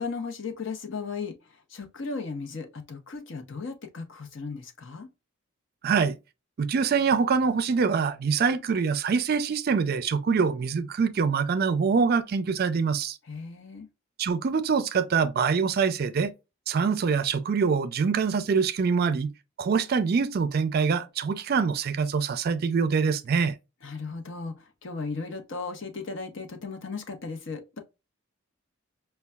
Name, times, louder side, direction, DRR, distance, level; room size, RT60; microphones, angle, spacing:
voice 1, 0.0-5.1 13.2-13.9 23.8-27.8, left 4 dB, 60° left, 0.8 m, -36 dB
voice 2, 5.8-6.2 6.6-13.2 14.2-16.3 16.7-19.3 19.6-23.5, right 5 dB, 45° right, 0.4 m, -24 dB
5.4 x 2.3 x 2.3 m
head